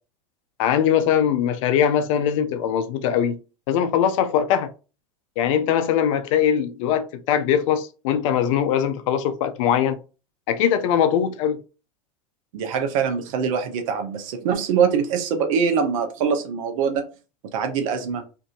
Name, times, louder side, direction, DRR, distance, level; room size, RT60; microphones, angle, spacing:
voice 1, 0.6-3.4 3.7-4.7 5.4-10.0 10.5-11.6, left 9 dB, 65° left, 0.5 m, -21 dB
voice 2, 12.5-17.1 17.5-18.2, right 6 dB, 70° right, 0.7 m, -23 dB
2.6 x 2.6 x 2.4 m
hypercardioid pair, 90°, 18 cm